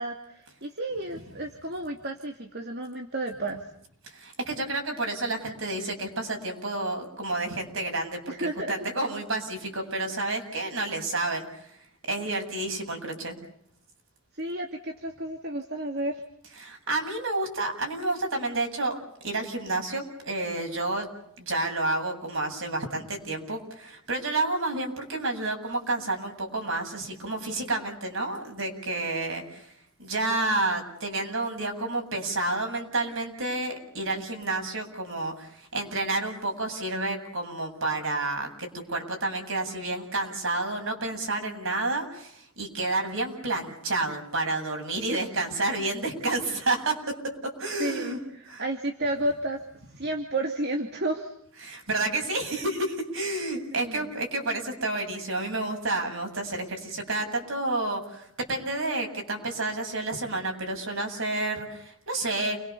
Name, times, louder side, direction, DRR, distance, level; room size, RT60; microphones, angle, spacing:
voice 1, 0.0-3.6 8.3-8.8 14.3-16.2 45.1-45.2 47.8-49.6 50.0-51.3 53.7-54.1, right 1 dB, 50° right, 3 dB, 2.7 m, -32 dB
voice 2, 4.0-11.7 12.0-13.3 16.6-21.1 21.4-29.7 30.0-47.0 47.2-47.3 47.6-48.2 48.5-48.6 51.6-62.6, right 2 dB, 65° right, 3 dB, 7.9 m, -30 dB
30.0 x 23.5 x 7.1 m, 0.71 s
head